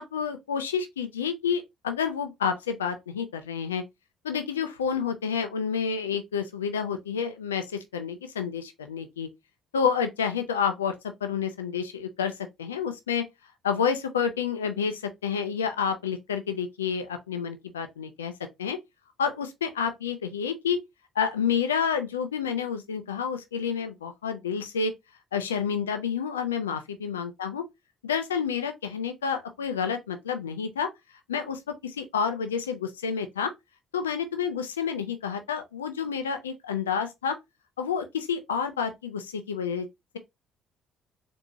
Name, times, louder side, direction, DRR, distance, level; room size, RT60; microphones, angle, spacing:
voice 1, 0.0-3.8 4.2-9.3 9.7-10.9 11.2-12.3 12.6-13.2 13.6-18.3 18.6-18.8 19.2-20.8 21.2-24.9 25.3-27.6 28.0-30.9 31.3-33.5 33.9-37.4 37.8-39.9, left 6 dB, 80° left, 0.4 m, -29 dB
4.2 x 2.6 x 2.7 m
figure-of-eight pair, 45°, 0 cm